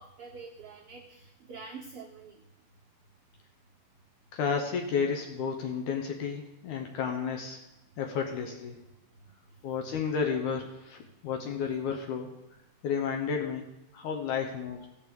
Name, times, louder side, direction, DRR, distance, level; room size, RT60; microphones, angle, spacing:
voice 1, 0.0-2.4, right 4 dB, 85° right, 0 dB, 1.2 m, -46 dB
voice 2, 4.3-7.6 8.0-8.8 9.6-12.3 12.8-13.6 13.9-14.9, left 6 dB, 70° left, 2 dB, 2.3 m, -32 dB
15.0 x 5.3 x 7.9 m, 0.92 s
omnidirectional pair, 3.9 m